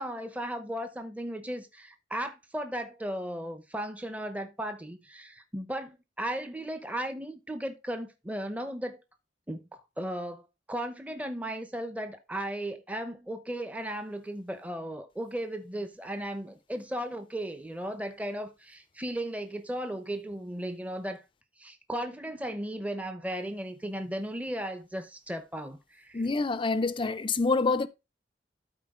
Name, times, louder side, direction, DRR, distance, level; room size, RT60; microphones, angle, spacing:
voice 1, 0.0-9.0 9.5-21.2 21.6-26.2, right 1 dB, 10° right, 0.8 m, -36 dB
voice 2, 26.1-27.9, left 3 dB, 30° left, 0.5 m, -26 dB
13.0 x 4.3 x 3.7 m
head